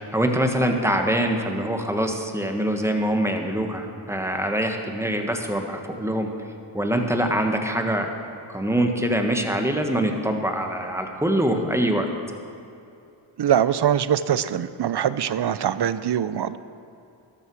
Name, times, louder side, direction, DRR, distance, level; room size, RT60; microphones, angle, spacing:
voice 1, 0.1-6.3 6.7-8.1 8.5-12.1, right 1 dB, 5° right, 3 dB, 1.5 m, -24 dB
voice 2, 13.4-16.6, right 9 dB, 55° right, 15 dB, 0.6 m, -23 dB
13.0 x 12.5 x 4.8 m, 2.6 s
cardioid pair, 65°, 50 cm